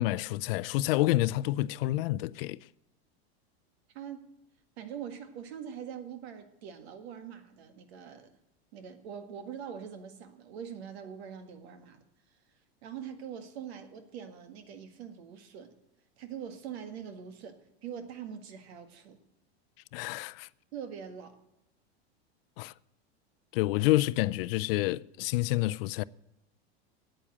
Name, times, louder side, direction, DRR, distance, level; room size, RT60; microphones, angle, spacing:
voice 1, 0.0-2.7 19.9-20.5 22.6-22.7 23.5-26.0, left 17 dB, 65° left, 0.5 m, -28 dB
voice 2, 3.9-4.3 4.8-8.3 8.7-12.0 12.8-15.8 16.2-19.2 20.7-21.4, right 8 dB, 75° right, 1.8 m, -43 dB
8.9 x 8.8 x 8.6 m
supercardioid pair, 125°, 32 cm